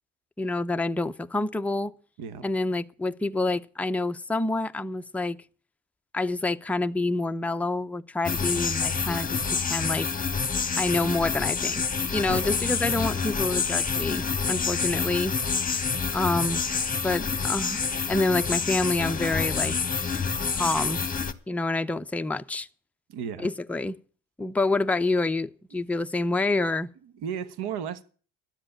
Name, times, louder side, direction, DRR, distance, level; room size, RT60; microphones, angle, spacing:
voice 1, 0.4-1.9 2.4-5.4 6.1-10.1 10.8-11.8 12.1-15.4 16.1-16.6 17.0-17.8 18.1-19.8 20.5-21.0 21.5-22.7 23.4-24.0 24.4-26.9, left 2 dB, 5° left, 0.5 m, -27 dB
sound 1, 8.2-21.3, left 5 dB, 20° left, 1.5 m, -28 dB
voice 2, 12.2-12.6 23.1-23.5 27.0-28.0, right 8 dB, 65° right, 1.3 m, -34 dB
12.5 x 7.8 x 8.6 m
supercardioid pair, 70°, 42 cm